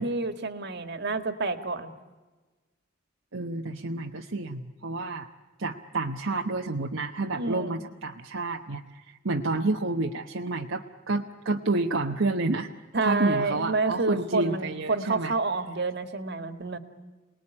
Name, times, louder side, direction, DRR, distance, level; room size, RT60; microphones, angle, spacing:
voice 1, 0.0-1.9 7.3-7.8 12.9-16.8, right 3 dB, 55° right, 9 dB, 1.9 m, -29 dB
voice 2, 3.3-5.3 5.6-12.7 13.0-15.3, right 2 dB, 70° right, 2 dB, 1.1 m, -29 dB
28.5 x 20.0 x 9.9 m, 1.3 s
head